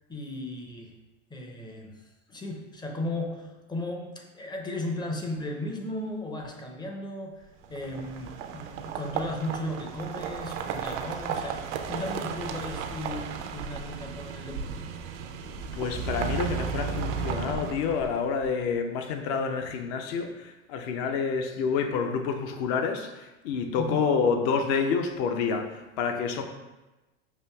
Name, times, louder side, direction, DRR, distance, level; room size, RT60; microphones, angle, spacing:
voice 1, 0.1-0.9 1.3-2.0 2.3-7.4 7.7-14.9 23.8-24.1, left 1 dB, 10° left, 2 dB, 0.5 m, -36 dB
sound 1, 7.6-18.5, right 6 dB, 60° right, 0.5 m, -34 dB
voice 2, 15.7-26.4, left 5 dB, 55° left, 5 dB, 0.7 m, -28 dB
6.4 x 2.5 x 2.3 m, 1.1 s
hypercardioid pair, 90°, 39 cm